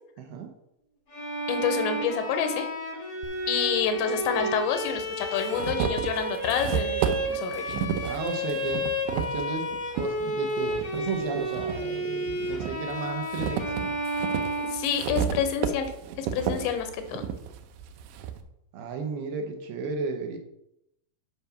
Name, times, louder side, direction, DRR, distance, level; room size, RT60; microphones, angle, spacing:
voice 1, 0.2-0.5 8.0-9.7 9.9-14.0 18.7-20.4, right 5 dB, 75° right, 4 dB, 2.6 m, -34 dB
Bowed string instrument, 1.1-15.4, equal, 45° left, 1.2 m, -31 dB
voice 2, 1.5-2.7 3.5-7.8 14.6-15.9 16.2-17.3, left 7 dB, 85° left, 7 dB, 3.1 m, -28 dB
sound 1, 3.2-3.3 4.4-4.5 5.0-10.1 10.6-11.8 12.3-18.4, right 8 dB, 90° right, 2.9 m, -32 dB
8.2 x 5.3 x 5.7 m, 0.82 s
omnidirectional pair, 5.1 m